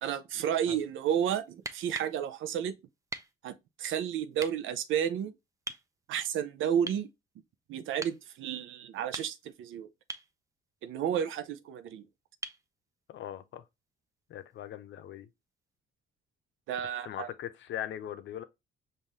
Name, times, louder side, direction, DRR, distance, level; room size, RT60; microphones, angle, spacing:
voice 1, 0.0-2.7 3.4-5.3 6.1-7.1 7.7-9.9 10.8-12.1 16.7-17.3, right 9 dB, 80° right, 0.6 m, -32 dB
sound 1, 1.5-2.2 3.1-3.3 4.4-4.5 5.7-5.9 6.9-7.1 8.0-8.2 8.9-9.6 10.1-10.3 12.4-12.7 14.5-14.6, right 3 dB, 15° right, 0.5 m, -41 dB
voice 2, 13.1-13.6 14.3-15.3 16.8-18.4, left 11 dB, 70° left, 0.6 m, -40 dB
5.4 x 2.6 x 3.1 m
cardioid pair, 90°, 20 cm